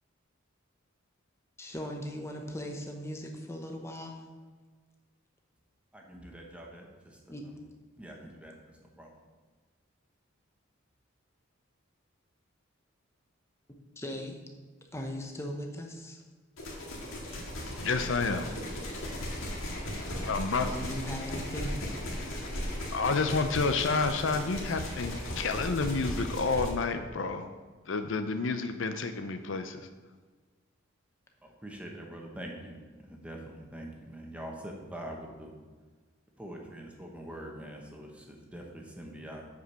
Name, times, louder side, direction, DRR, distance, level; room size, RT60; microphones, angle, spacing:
voice 1, 1.6-4.2 7.3-7.5 14.0-14.4 14.9-16.2 20.7-21.9, equal, 15° left, 2 dB, 0.9 m, -38 dB
voice 2, 5.9-6.9 7.3-7.6 8.0-8.5 9.0-9.1 31.4-35.5 36.4-39.4, right 1 dB, 5° right, 0 dB, 1.1 m, -44 dB
sound 1, 16.6-26.7, left 1 dB, 80° left, 1.9 m, -37 dB
voice 3, 17.8-18.5 20.3-20.8 22.3-22.4 22.9-27.5 27.9-29.9, left 4 dB, 65° left, 8 dB, 0.5 m, -30 dB
8.2 x 5.1 x 6.2 m, 1.4 s
head